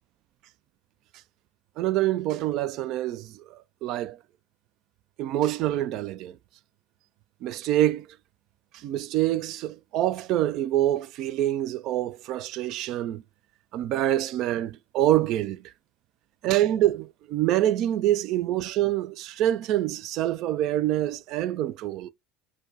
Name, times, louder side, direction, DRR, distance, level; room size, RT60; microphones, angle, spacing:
voice 1, 1.8-4.2 5.2-6.4 7.4-8.1 8.7-13.2 13.7-15.6 16.4-22.1, right 13 dB, 60° right, 0.3 m, -26 dB
4.3 x 2.2 x 2.7 m
hypercardioid pair, 75°, 0 cm